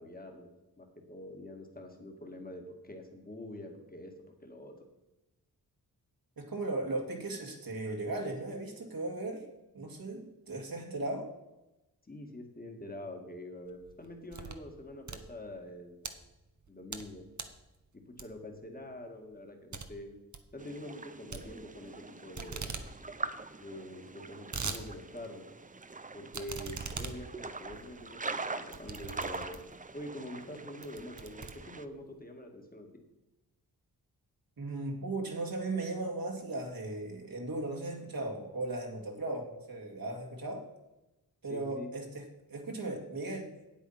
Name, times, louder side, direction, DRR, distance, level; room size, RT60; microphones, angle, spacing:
voice 1, 0.0-4.1 4.4-4.8 12.1-16.0 16.7-17.2 17.9-20.2 20.5-22.7 23.6-25.5 26.1-29.6 29.9-32.9 41.5-41.9, left 1 dB, 25° left, 3 dB, 2.1 m, -45 dB
voice 2, 6.4-9.5 9.7-11.3 34.6-40.6 41.4-43.5, right 2 dB, 65° right, 1 dB, 2.2 m, -37 dB
sound 1, 13.7-14.7 15.0-16.1 16.6-17.1 17.3-17.6 18.2-18.6 18.9-19.0 19.3-19.4 19.7-19.9 20.2-20.5 21.3-22.0 22.3-22.9 23.2-23.3 23.5-23.6 24.1-24.8 25.2-25.3 26.3-29.8 30.4-30.5 30.8-32.1, right 5 dB, 50° right, 1.1 m, -41 dB
sound 2, 20.6-31.8, right 3 dB, 20° right, 0.6 m, -43 dB
8.5 x 8.4 x 5.8 m, 0.98 s
cardioid pair, 70°, 39 cm